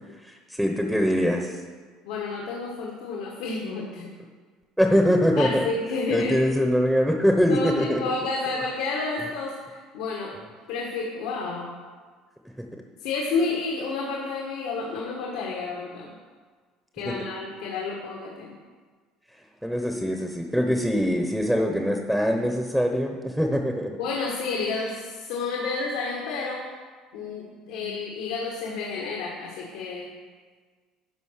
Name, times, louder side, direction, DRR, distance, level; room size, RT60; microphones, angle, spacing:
voice 1, 0.2-1.6 4.8-5.6 6.1-8.0 17.1-17.2 19.6-23.9, equal, ahead, 3 dB, 0.7 m, -23 dB
voice 2, 2.0-4.1 5.4-6.3 7.5-10.3 10.7-11.6 13.0-16.1 16.9-18.5 24.0-26.6 27.1-30.1, left 4 dB, 85° left, -2 dB, 1.5 m, -30 dB
11.5 x 4.9 x 6.4 m, 1.5 s
cardioid pair, 150°, 0 cm